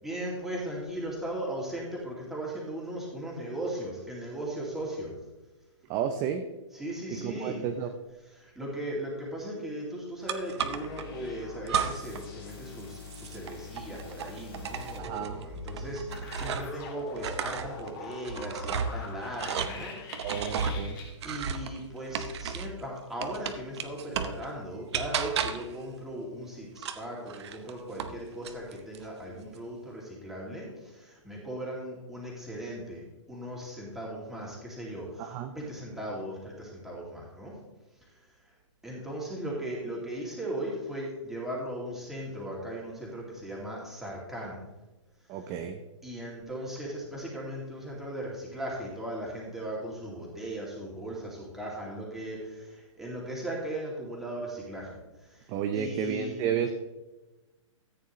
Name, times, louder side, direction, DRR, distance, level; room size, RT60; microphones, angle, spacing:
voice 1, 0.0-5.2 6.7-7.7 8.3-20.3 21.2-37.6 38.8-44.6 46.0-56.5, right 1 dB, ahead, -4 dB, 2.5 m, -38 dB
voice 2, 5.9-6.4 7.1-7.9 15.0-15.4 20.2-21.0 35.2-35.5 45.3-45.8 55.5-56.7, right 8 dB, 20° right, 6 dB, 0.5 m, -32 dB
sound 1, 10.3-11.1 11.7-12.3 12.5-16.8 17.1-22.8 23.2-24.4 24.9-25.8 26.8-28.2 28.4-29.0, right 6 dB, 55° right, 0.9 m, -34 dB
sound 2, 10.7-21.1, left 4 dB, 45° left, 3.0 m, -44 dB
14.0 x 9.2 x 3.2 m, 1.1 s
hypercardioid pair, 155°, 16 cm